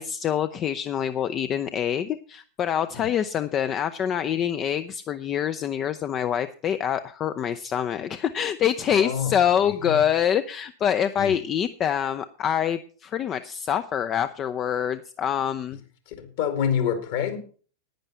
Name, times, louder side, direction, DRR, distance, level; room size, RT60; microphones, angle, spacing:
voice 1, 0.0-15.8, left 9 dB, 30° left, 0.5 m, -25 dB
voice 2, 8.9-9.4 9.8-10.1 11.2-11.3 16.1-17.4, left 8 dB, 50° left, 2.2 m, -27 dB
10.5 x 9.9 x 5.5 m
figure-of-eight pair, 90°, 0 cm